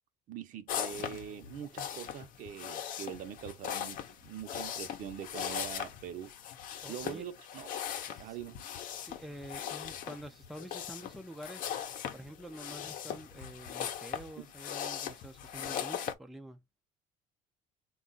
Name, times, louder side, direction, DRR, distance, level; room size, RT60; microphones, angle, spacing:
voice 1, 0.3-6.3 6.9-7.7 8.2-8.6 14.4-14.5, right 9 dB, 55° right, 0.8 m, -43 dB
sound 1, 0.7-16.1, left 9 dB, 60° left, 0.7 m, -39 dB
voice 2, 6.8-7.2 8.1-8.4 8.9-11.7 12.1-16.6, right 1 dB, ahead, 0.4 m, -47 dB
3.6 x 2.4 x 3.9 m
cardioid pair, 115°, 15 cm